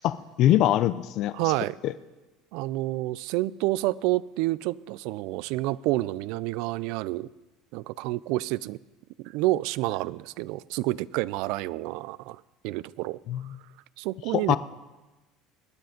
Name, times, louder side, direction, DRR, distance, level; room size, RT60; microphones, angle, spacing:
voice 1, 0.0-1.5 1.8-1.9 13.3-13.5 14.3-14.6, left 13 dB, 60° left, 0.5 m, -23 dB
voice 2, 1.3-1.8 2.5-7.3 7.7-8.8 9.2-13.2 14.0-14.6, right 18 dB, 70° right, 0.4 m, -29 dB
19.5 x 9.3 x 5.1 m
supercardioid pair, 110°, 0 cm